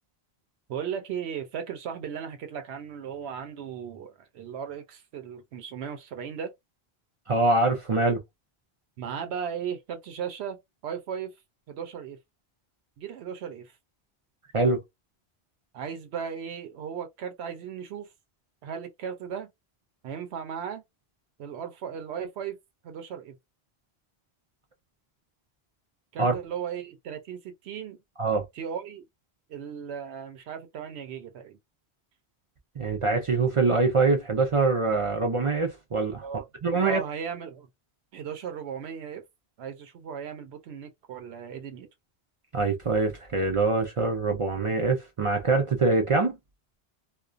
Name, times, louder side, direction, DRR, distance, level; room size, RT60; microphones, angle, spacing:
voice 1, 0.7-6.5 9.0-11.3 11.7-12.2 13.0-13.7 15.7-18.1 18.6-19.5 20.0-20.8 21.4-22.6 22.8-23.3 26.1-28.0 28.5-29.0 29.5-31.6 36.2-36.4 36.7-37.7 38.1-39.2 39.6-41.9, right 7 dB, 80° right, 0.9 m, -36 dB
voice 2, 7.3-8.2 14.5-14.8 26.2-26.3 28.2-28.5 32.8-36.3 36.6-37.0 42.5-46.4, right 3 dB, 50° right, 0.3 m, -24 dB
2.3 x 2.1 x 2.4 m
omnidirectional pair, 1.1 m